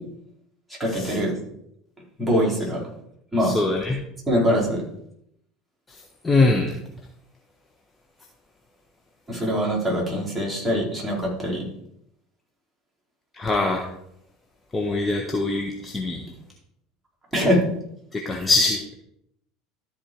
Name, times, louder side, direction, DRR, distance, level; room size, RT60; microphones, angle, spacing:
voice 1, 0.8-1.3 2.2-2.8 3.3-3.5 4.3-4.8 9.3-11.6 17.3-17.6, equal, 5° right, -5 dB, 4.3 m, -23 dB
voice 2, 3.4-4.0 6.2-6.7 13.3-13.9 14.7-16.2 18.1-18.8, left 3 dB, 15° left, 2 dB, 1.2 m, -22 dB
13.0 x 4.4 x 4.6 m, 0.75 s
figure-of-eight pair, 70°, 0 cm